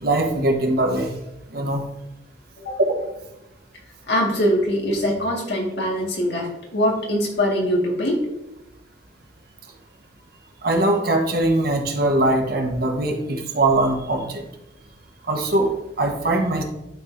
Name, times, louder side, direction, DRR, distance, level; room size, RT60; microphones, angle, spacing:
voice 1, 0.0-1.1 1.5-1.8 3.0-3.1 10.6-14.4 15.3-15.7 16.0-16.6, right 2 dB, 60° right, 2 dB, 1.3 m, -21 dB
voice 2, 4.1-8.3, equal, 70° left, -1 dB, 2.0 m, -22 dB
11.5 x 4.8 x 2.7 m, 0.90 s
head